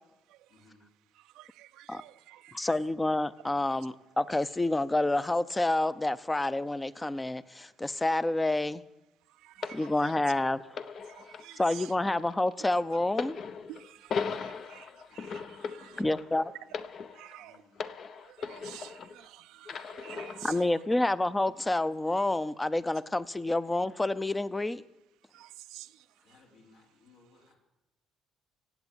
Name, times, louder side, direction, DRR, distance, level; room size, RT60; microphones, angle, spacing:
voice 1, 0.5-0.9 15.8-16.9 17.4-18.0 26.2-27.5, left 3 dB, 75° left, 4.6 m, -61 dB
voice 2, 1.8-2.5 9.8-9.9 11.4-11.9 13.7-13.8 14.7-14.8 15.3-15.5 15.8-15.9 17.2-17.5 18.5-18.9 20.0-20.5 25.7-25.9, right 15 dB, 85° right, 0.5 m, -46 dB
voice 3, 2.5-8.8 9.7-10.8 11.6-13.4 16.0-16.5 20.4-24.8, left 2 dB, 10° left, 0.6 m, -28 dB
sound 1, 9.6-19.3 19.7-20.7 21.5-21.6, left 5 dB, 50° left, 0.8 m, -39 dB
16.5 x 8.2 x 8.9 m
cardioid pair, 120°, 0 cm